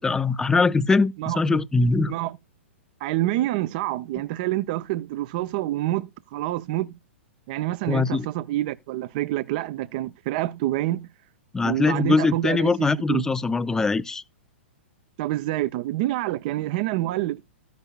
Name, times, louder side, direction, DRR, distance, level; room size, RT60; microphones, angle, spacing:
voice 1, 0.0-2.1 7.9-8.3 11.5-14.2, left 3 dB, 10° left, 0.5 m, -22 dB
voice 2, 3.0-6.9 7.5-11.1 11.6-13.2 15.2-17.4, right 15 dB, 45° right, 0.5 m, -27 dB
13.5 x 9.3 x 2.3 m
figure-of-eight pair, 110°, 7 cm